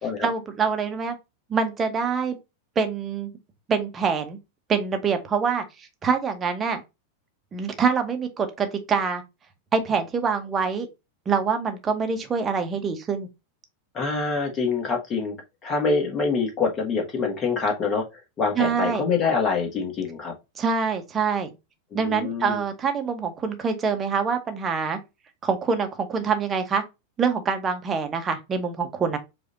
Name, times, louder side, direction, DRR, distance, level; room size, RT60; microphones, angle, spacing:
voice 1, 0.2-1.2 1.5-2.4 2.8-3.3 3.7-4.4 4.7-6.8 7.5-9.2 9.7-10.9 11.3-13.3 18.6-19.0 20.6-21.5 21.9-25.0 25.4-26.8 27.2-29.2, right 5 dB, 20° right, 1.0 m, -25 dB
voice 2, 13.9-15.3 15.6-18.0 18.4-20.3 21.9-22.6, left 4 dB, 30° left, 1.7 m, -25 dB
4.9 x 2.6 x 4.0 m
figure-of-eight pair, 90°, 0 cm